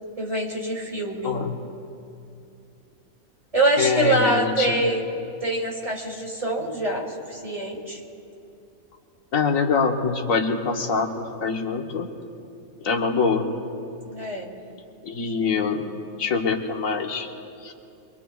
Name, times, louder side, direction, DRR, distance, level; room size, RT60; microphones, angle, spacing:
voice 1, 0.2-1.4 3.5-5.0 5.4-8.0 14.0-14.5 15.5-15.7, right 1 dB, 25° right, -1 dB, 2.6 m, -25 dB
voice 2, 3.8-4.8 9.3-12.1 12.8-13.5 15.0-15.9 16.2-17.3 17.6-17.7, left 5 dB, 85° left, 3 dB, 1.5 m, -24 dB
25.5 x 23.5 x 2.3 m, 2.6 s
omnidirectional pair, 1.4 m